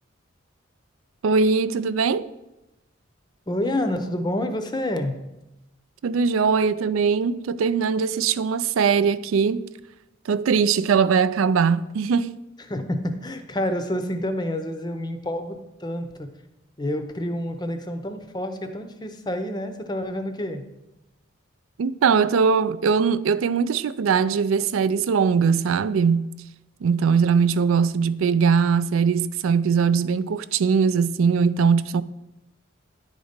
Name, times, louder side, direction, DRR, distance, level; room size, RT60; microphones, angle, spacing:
voice 1, 1.2-2.3 6.0-9.6 10.3-12.4 21.8-26.3 26.8-32.0, right 6 dB, 85° right, 0.4 m, -21 dB
voice 2, 3.5-5.2 12.7-16.3 16.8-20.7, left 1 dB, 20° left, 0.6 m, -28 dB
9.9 x 4.1 x 5.1 m
head